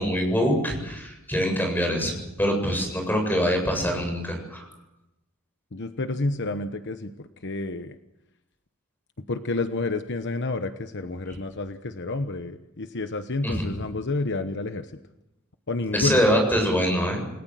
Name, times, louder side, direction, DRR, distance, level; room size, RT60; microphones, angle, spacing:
voice 1, 0.0-4.6 13.4-13.7 15.9-17.2, equal, 10° left, 3 dB, 7.6 m, -24 dB
voice 2, 5.7-8.0 9.3-14.9 15.7-16.2, left 2 dB, 55° left, 8 dB, 1.1 m, -30 dB
29.0 x 19.5 x 7.7 m, 0.94 s
head